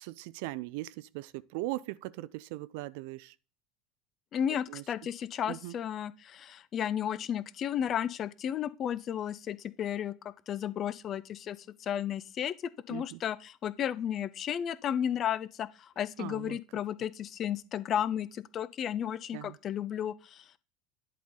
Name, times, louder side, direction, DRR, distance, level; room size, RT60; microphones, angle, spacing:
voice 1, 0.0-3.3 4.7-4.8 5.5-5.7 12.9-13.2 16.2-16.6 19.3-19.6, right 18 dB, 60° right, 0.4 m, -39 dB
voice 2, 4.3-12.5 12.9-20.6, left 9 dB, 40° left, 0.5 m, -33 dB
10.5 x 4.2 x 3.7 m
figure-of-eight pair, 75°, 0 cm